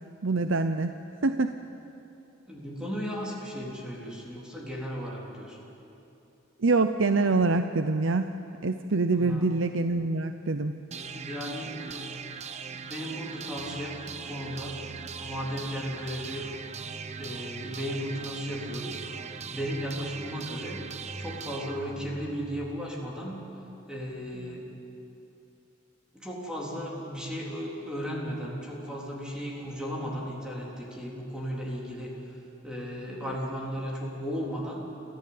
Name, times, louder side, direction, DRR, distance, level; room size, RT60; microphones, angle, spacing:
voice 1, 0.2-0.9 1.2-1.6 6.6-8.3 8.6-10.8 24.4-24.6, right 3 dB, 80° right, 8 dB, 0.7 m, -25 dB
voice 2, 2.5-5.6 9.2-9.4 11.1-12.2 12.7-14.8 15.2-16.5 17.2-19.0 19.5-20.8 21.2-23.4 23.9-24.8 26.1-34.8, equal, 5° right, -4 dB, 3.7 m, -35 dB
sound 1, 10.9-22.9, right 5 dB, 35° right, 0.9 m, -40 dB
29.5 x 14.5 x 8.7 m, 2.9 s
head